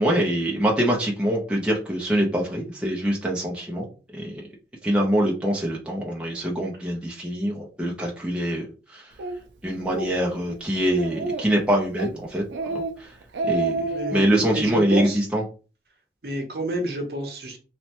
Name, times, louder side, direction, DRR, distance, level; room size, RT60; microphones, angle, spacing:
voice 1, 0.0-3.9 4.1-4.5 4.8-9.1 9.6-12.4 12.7-13.1 13.4-15.4, right 1 dB, 5° right, -3 dB, 0.5 m, -24 dB
Speech, 9.2-9.3 9.8-10.1 10.5-10.6 10.9-11.6 12.0-12.2 12.5-12.9 13.2-14.3, right 3 dB, 90° right, 0.4 m, -28 dB
voice 2, 13.9-14.2 14.5-15.2 16.2-17.6, right 1 dB, 60° right, 3 dB, 0.7 m, -28 dB
3.1 x 2.1 x 2.8 m, 0.35 s
head